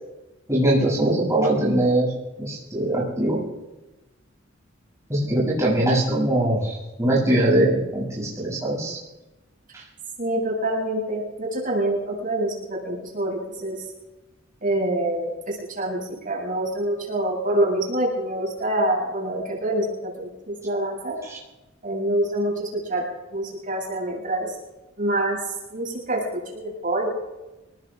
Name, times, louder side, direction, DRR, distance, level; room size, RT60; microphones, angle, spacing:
voice 1, 0.5-2.1 2.4-3.4 5.1-9.0 21.3-21.4, right 1 dB, 15° right, -6 dB, 7.6 m, -22 dB
voice 2, 10.2-13.8 14.6-21.2 21.8-23.0 23.3-24.5 25.0-25.4 25.7-27.1, right 1 dB, 45° right, -2 dB, 7.6 m, -26 dB
29.0 x 19.5 x 2.6 m, 1.1 s
head